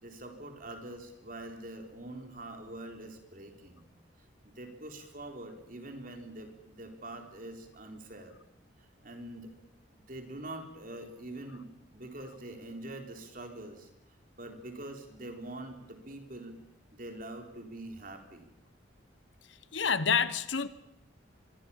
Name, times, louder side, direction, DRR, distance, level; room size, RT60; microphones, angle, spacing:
voice 1, 0.0-3.9 4.6-8.3 8.8-9.5 9.9-13.9 14.4-16.6 17.0-18.5, right 1 dB, 45° right, 4.1 m, -44 dB
voice 2, 19.7-20.7, left 6 dB, 70° left, 1.3 m, -28 dB
25.5 x 24.0 x 7.3 m
head